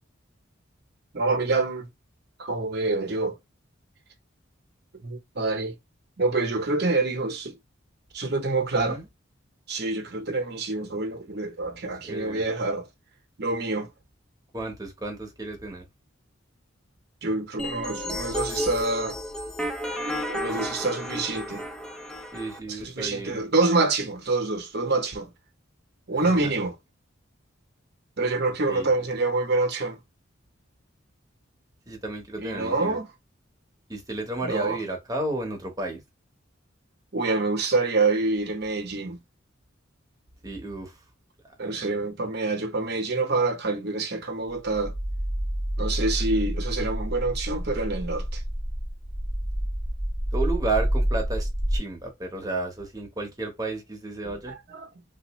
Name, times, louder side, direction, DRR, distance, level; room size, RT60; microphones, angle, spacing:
voice 1, 1.1-1.9 2.4-3.3 5.0-5.7 6.2-7.5 8.1-9.0 9.7-12.9 13.4-13.9 17.2-19.2 20.1-21.6 22.7-25.3 26.1-26.7 28.2-30.0 32.4-33.1 34.4-34.8 37.1-39.2 41.6-44.9 45.8-48.4 54.2-55.0, right 3 dB, 55° right, 0.9 m, -26 dB
voice 2, 12.0-12.4 14.5-15.8 22.3-23.4 26.2-26.5 28.7-28.9 31.9-33.0 33.9-36.0 40.4-40.9 41.7-41.8 50.3-54.5, right 2 dB, 20° right, 1.0 m, -32 dB
sound 1, 17.6-22.6, equal, 5° left, 0.5 m, -32 dB
sound 2, 44.6-51.8, equal, 45° left, 1.6 m, -28 dB
3.3 x 2.5 x 3.0 m
head